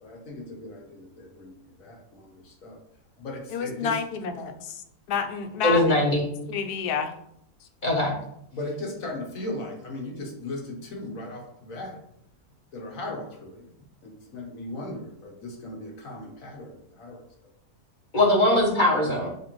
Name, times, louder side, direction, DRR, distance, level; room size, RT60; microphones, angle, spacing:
voice 1, 0.0-2.8 3.2-4.0 8.5-12.0 12.7-13.7 14.0-17.2, left 1 dB, 60° left, 0 dB, 1.3 m, -37 dB
voice 2, 3.5-4.8 5.1-6.1 6.5-7.1, left 6 dB, 80° left, 7 dB, 1.1 m, -29 dB
voice 3, 5.6-6.3 7.8-8.1 18.1-19.3, left 1 dB, 35° left, -4 dB, 1.1 m, -21 dB
7.0 x 2.5 x 3.0 m, 0.75 s
omnidirectional pair, 1.7 m